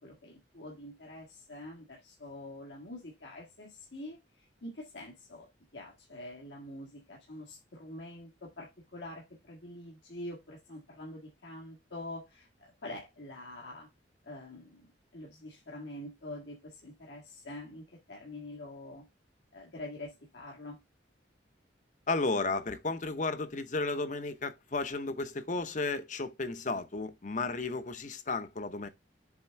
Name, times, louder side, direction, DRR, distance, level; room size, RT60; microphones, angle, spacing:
voice 1, 0.0-4.2 4.6-5.5 5.7-13.9 14.2-14.9 15.1-19.1 19.5-20.8, left 1 dB, 75° left, 1.8 m, -45 dB
voice 2, 22.1-28.9, left 3 dB, 45° left, 0.8 m, -33 dB
7.4 x 3.6 x 4.5 m
head